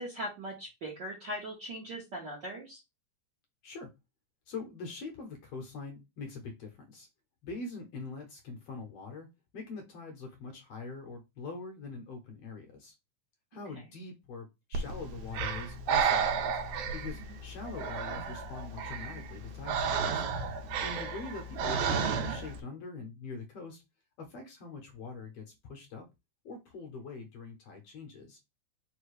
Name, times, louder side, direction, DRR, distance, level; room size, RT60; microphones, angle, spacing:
voice 1, 0.0-2.8, equal, 65° right, -3 dB, 1.1 m, -39 dB
voice 2, 4.5-7.1 7.4-9.3 9.5-12.9 13.5-16.6 16.9-20.2 20.8-23.8 24.2-26.0 26.4-28.4, left 4 dB, 65° left, 3 dB, 1.6 m, -43 dB
Breathing, 14.7-22.6, right 6 dB, 85° right, 2.0 m, -32 dB
4.8 x 2.2 x 4.7 m, 0.23 s
omnidirectional pair, 3.4 m